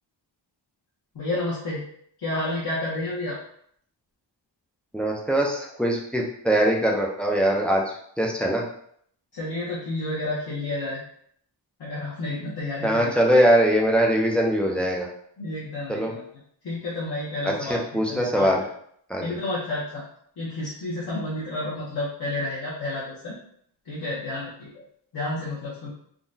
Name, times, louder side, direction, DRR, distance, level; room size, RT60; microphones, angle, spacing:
voice 1, 1.1-1.8 2.2-3.4 9.3-11.0 11.8-13.1 15.4-16.2 16.6-17.8 18.1-18.5 19.2-20.0 20.4-23.4 23.9-24.8 25.1-25.9, left 2 dB, 60° left, -8 dB, 0.9 m, -30 dB
voice 2, 4.9-7.8 8.2-8.6 12.8-15.1 15.9-16.1 17.4-18.6 19.1-19.4, equal, 5° left, -1 dB, 0.3 m, -22 dB
3.6 x 2.2 x 2.6 m, 0.65 s
wide cardioid pair, 170°, 45 cm